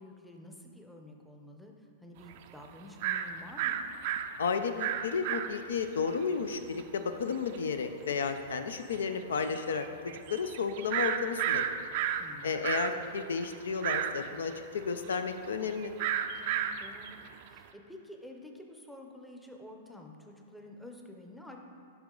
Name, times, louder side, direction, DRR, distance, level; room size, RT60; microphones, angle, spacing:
voice 1, 0.0-3.8 12.2-12.6 16.3-17.2 17.5-21.6, left 1 dB, 5° left, 1 dB, 0.6 m, -49 dB
sound 1, 2.3-2.4 3.0-3.3 3.6-5.8 6.2-6.3 6.5-6.8 7.5-7.6 8.3-8.4 8.8-9.0 9.4-12.2 12.5-17.6, right 10 dB, 55° right, 0.3 m, -32 dB
voice 2, 4.4-9.9 10.3-11.6 12.4-15.9, left 5 dB, 85° left, 8 dB, 0.4 m, -32 dB
7.0 x 5.0 x 3.8 m, 2.6 s
hypercardioid pair, 135°, 0 cm